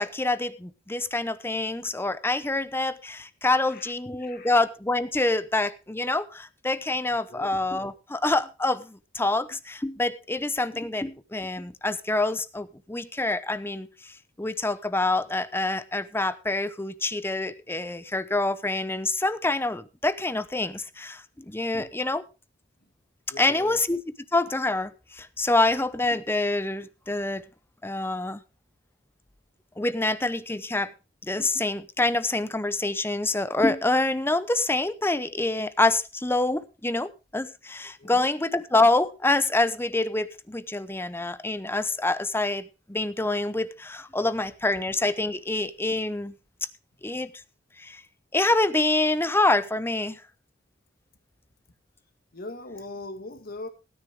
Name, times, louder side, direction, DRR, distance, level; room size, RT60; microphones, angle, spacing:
voice 1, 0.0-22.2 23.4-24.0 24.3-27.4 27.8-28.4 29.8-30.9 31.2-46.3 47.0-47.3 47.8-48.0 48.3-50.2, left 2 dB, 10° left, 0.7 m, -26 dB
voice 2, 3.4-3.9 4.2-4.5 7.1-7.5 21.8-22.0 22.8-22.9 23.3-23.8 38.0-38.3 52.3-53.7, left 2 dB, 50° left, 1.9 m, -41 dB
16.5 x 10.0 x 3.6 m
head